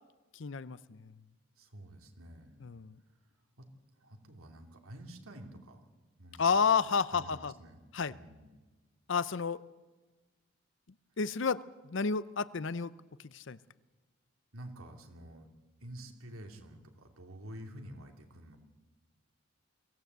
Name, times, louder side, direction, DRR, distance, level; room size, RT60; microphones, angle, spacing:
voice 1, 0.3-1.1 2.6-3.0 6.4-7.5 7.9-8.2 9.1-9.6 11.2-12.9 13.2-13.6, left 5 dB, 60° left, 17 dB, 0.6 m, -31 dB
voice 2, 1.6-2.6 3.6-3.7 4.0-5.8 6.2-6.8 7.1-7.8 8.1-8.6 14.5-15.5 15.8-18.6, right 1 dB, 85° right, 4 dB, 2.8 m, -49 dB
23.0 x 16.5 x 8.1 m, 1.2 s
head